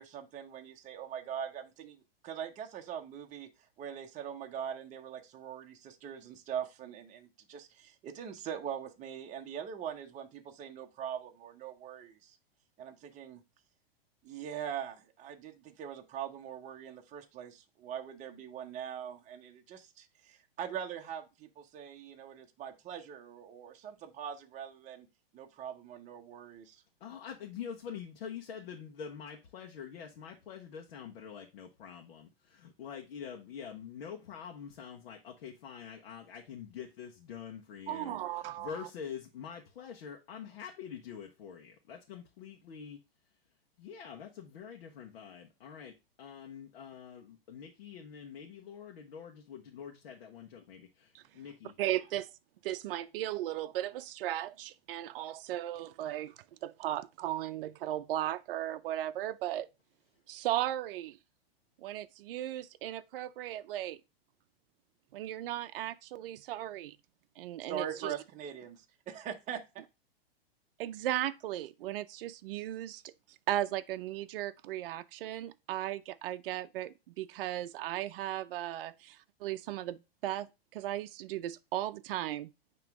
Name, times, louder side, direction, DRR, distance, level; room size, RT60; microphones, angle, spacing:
voice 1, 0.0-3.5 3.8-12.4 12.8-13.4 14.2-25.1 25.3-26.8 67.7-69.6, right 8 dB, 25° right, 0.9 m, -42 dB
voice 2, 27.0-43.0 43.8-45.9 46.2-51.7, left 7 dB, 65° left, 1.2 m, -45 dB
voice 3, 37.9-38.9 51.1-51.2 51.8-52.2 52.6-56.3 56.6-59.7 60.3-61.2 61.8-64.0 65.1-67.0 67.4-68.1 70.8-73.0 73.5-82.5, right 13 dB, 65° right, 0.6 m, -36 dB
9.1 x 3.0 x 3.5 m
hypercardioid pair, 130°, 30 cm